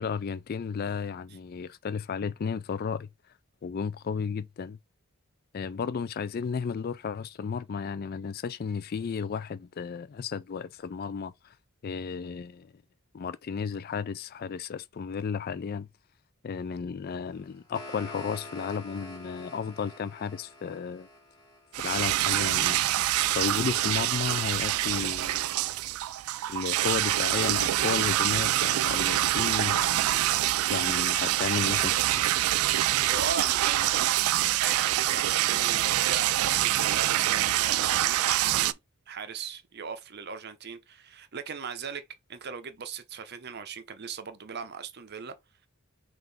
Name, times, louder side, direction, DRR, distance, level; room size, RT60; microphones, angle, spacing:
voice 1, 0.0-3.1 3.6-4.8 5.5-11.5 11.8-12.7 13.1-15.9 16.4-21.1 21.8-22.9 23.3-25.7 26.5-29.9 30.7-32.2, left 6 dB, 45° left, 0.3 m, -33 dB
sound 1, 17.3-22.4, left 1 dB, 20° left, 1.5 m, -46 dB
sound 2, 21.7-38.7, right 14 dB, 80° right, 0.3 m, -26 dB
voice 2, 33.1-38.8 39.1-42.0 42.3-45.3, right 6 dB, 50° right, 0.7 m, -38 dB
5.8 x 2.6 x 3.4 m
head